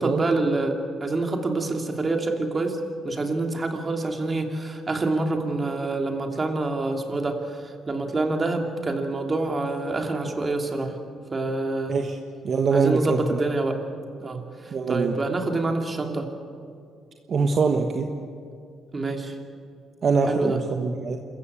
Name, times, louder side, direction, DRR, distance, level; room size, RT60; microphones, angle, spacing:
voice 1, 0.0-11.0 11.3-12.0 12.7-13.8 14.2-16.3 18.9-19.4 20.3-20.6, right 2 dB, 30° right, 4 dB, 2.8 m, -27 dB
voice 2, 12.4-13.4 14.7-15.2 17.3-18.1 20.0-21.2, right 4 dB, 50° right, 4 dB, 1.3 m, -23 dB
26.5 x 14.5 x 8.5 m, 2.4 s
cardioid pair, 90°, 0 cm